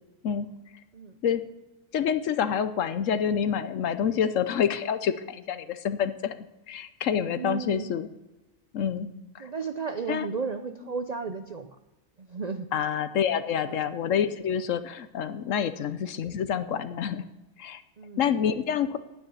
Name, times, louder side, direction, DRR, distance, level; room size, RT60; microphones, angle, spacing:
voice 1, 1.9-8.1 8.7-9.5 10.1-10.3 12.7-17.2 17.6-17.8 18.2-19.0, left 8 dB, 65° left, 12 dB, 1.0 m, -27 dB
voice 2, 7.2-7.9 9.4-11.7 12.2-12.7 13.7-13.9 14.1-14.2 15.6-15.8 18.0-18.3, right 5 dB, 55° right, 8 dB, 0.4 m, -34 dB
9.9 x 9.4 x 7.1 m, 1.1 s
omnidirectional pair, 1.5 m